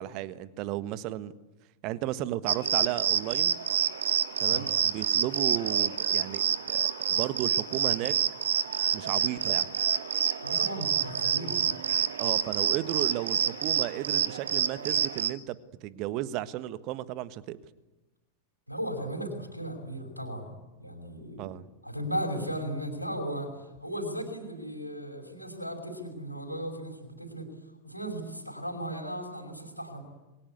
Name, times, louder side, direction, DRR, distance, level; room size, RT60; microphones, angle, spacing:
voice 1, 0.0-1.3 1.8-3.6 4.4-8.1 8.9-9.7 12.2-17.6 21.4-21.6, right 13 dB, 40° right, 14 dB, 1.4 m, -34 dB
sound 1, 2.5-15.3, right 8 dB, 65° right, 1.1 m, -28 dB
voice 2, 10.4-11.6 18.7-21.5 21.8-27.5 27.8-30.0, equal, 90° right, -1 dB, 5.2 m, -36 dB
28.0 x 23.0 x 8.3 m, 1.1 s
figure-of-eight pair, 90°, 0 cm